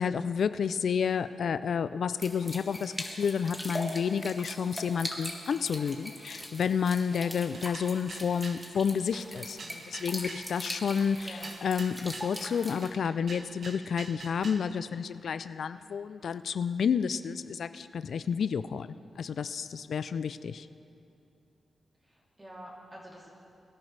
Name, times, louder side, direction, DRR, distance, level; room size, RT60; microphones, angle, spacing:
voice 1, 0.0-2.9 3.2-18.9 19.2-20.7, left 6 dB, 70° left, 13 dB, 0.3 m, -30 dB
sound 1, 2.2-12.9, equal, ahead, 1.6 m, -41 dB
sound 2, 7.5-8.7 9.1-10.5 11.0-12.3 12.8-14.7, right 3 dB, 60° right, 1.1 m, -45 dB
voice 2, 10.9-11.5 22.0-23.3, equal, 20° right, -5 dB, 2.9 m, -48 dB
22.5 x 10.5 x 3.3 m, 2.7 s
cardioid pair, 85°, 0 cm